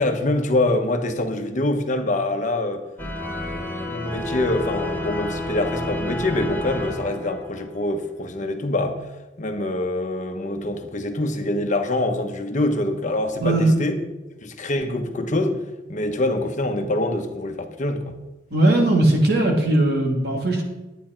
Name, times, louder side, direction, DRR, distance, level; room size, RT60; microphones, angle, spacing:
voice 1, 0.0-2.8 3.3-9.0 9.4-14.0 14.4-15.6 15.9-18.2, left 1 dB, 45° left, 5 dB, 1.1 m, -25 dB
sound 1, 3.0-7.8, left 1 dB, 10° left, 1.8 m, -30 dB
voice 2, 13.4-13.7 18.5-20.6, right 1 dB, 60° right, 1 dB, 2.5 m, -18 dB
11.0 x 9.3 x 4.4 m, 1.1 s
head